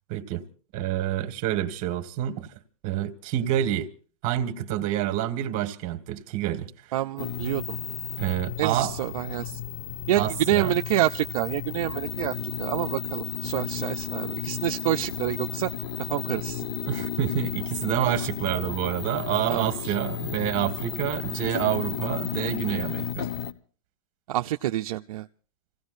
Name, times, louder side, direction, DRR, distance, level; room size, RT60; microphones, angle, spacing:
voice 1, 0.1-0.4 0.7-2.5 2.8-3.9 4.2-6.7 8.2-8.9 10.2-10.8 16.9-23.3, right 12 dB, 35° right, 1.8 m, -28 dB
voice 2, 6.9-7.8 8.6-9.6 10.1-15.7 16.1-16.6 19.5-20.0 24.3-25.3, right 13 dB, 65° right, 0.6 m, -27 dB
sound 1, 7.2-23.5, left 9 dB, 45° left, 1.2 m, -33 dB
29.0 x 17.0 x 2.6 m
hypercardioid pair, 150°, 19 cm